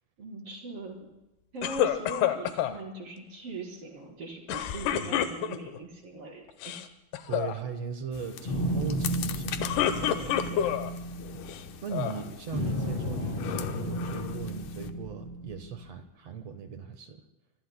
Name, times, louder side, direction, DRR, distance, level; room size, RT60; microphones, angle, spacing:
voice 1, 0.2-1.0 1.5-6.7 10.1-10.7, right 2 dB, 35° right, -1 dB, 4.9 m, -41 dB
sound 1, 1.6-2.8 4.5-5.8 6.5-6.9 7.1-7.5 9.4-10.9 11.5-12.2, left 10 dB, 85° left, 3.0 m, -28 dB
voice 2, 7.3-9.8 11.8-17.2, right 6 dB, 65° right, 6 dB, 1.6 m, -38 dB
sound 2, 8.1-14.9, left 10 dB, 70° left, 2.1 m, -42 dB
sound 3, 8.4-12.0 12.5-15.9, equal, 40° left, 8.6 m, -33 dB
26.0 x 25.0 x 2.2 m, 0.96 s
omnidirectional pair, 4.5 m